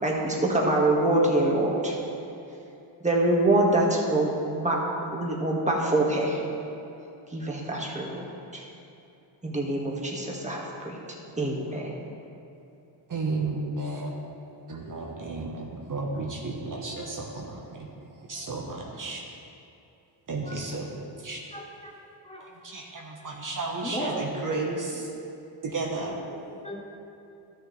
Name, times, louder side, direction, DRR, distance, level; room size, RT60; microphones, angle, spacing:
voice 1, 0.0-2.0 3.0-4.8 5.1-6.4 7.3-8.3 8.5-8.6 9.4-11.0 11.4-11.9, right 1 dB, 15° right, -2 dB, 1.7 m, -25 dB
voice 2, 13.1-14.1 14.7-17.9 18.2-19.2 20.3-20.9 21.2-21.4 22.6-25.1 25.6-26.2, right 3 dB, 40° right, -1 dB, 1.2 m, -33 dB
voice 3, 21.5-21.9 22.2-22.5 23.8-24.2 25.1-25.2 25.9-26.0 26.3-26.8, equal, 15° left, -2 dB, 1.0 m, -37 dB
13.0 x 6.7 x 3.2 m, 2.8 s
cardioid pair, 75°, 47 cm